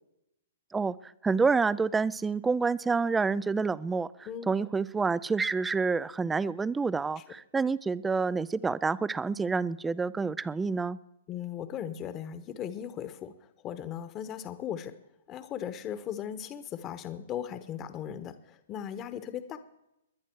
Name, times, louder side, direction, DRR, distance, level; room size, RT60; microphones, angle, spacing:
voice 1, 1.2-4.1 4.5-11.0, right 4 dB, 10° right, 19 dB, 0.4 m, -28 dB
voice 2, 11.3-15.0 15.3-19.6, left 9 dB, 25° left, 11 dB, 1.2 m, -38 dB
20.5 x 10.5 x 4.7 m, 0.85 s
hypercardioid pair, 130°, 0 cm